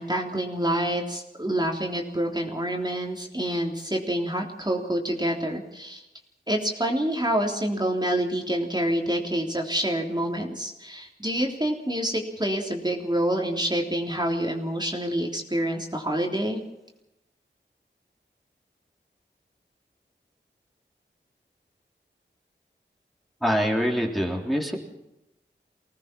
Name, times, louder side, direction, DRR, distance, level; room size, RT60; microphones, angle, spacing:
voice 1, 0.0-6.0 6.5-16.6, right 1 dB, 20° right, 0 dB, 3.4 m, -27 dB
voice 2, 23.4-24.8, equal, ahead, 0 dB, 3.6 m, -24 dB
25.5 x 18.5 x 6.1 m, 0.90 s
wide cardioid pair, 50°, 19 cm